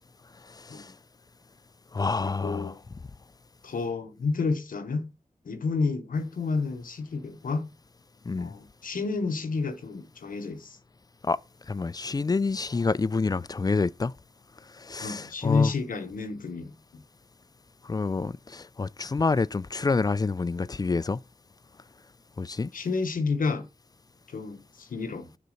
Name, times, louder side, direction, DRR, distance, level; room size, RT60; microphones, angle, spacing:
voice 1, 0.5-0.9 1.9-2.7 8.3-8.5 11.2-11.4 11.7-14.1 14.8-15.7 17.8-21.2 22.4-22.7, left 4 dB, 30° left, 0.3 m, -28 dB
voice 2, 2.2-2.8 3.6-5.1 5.4-7.7 8.4-10.8 15.0-17.0 22.7-23.7 24.3-25.3, left 4 dB, 85° left, 1.0 m, -30 dB
6.7 x 4.0 x 6.4 m
cardioid pair, 50°, 14 cm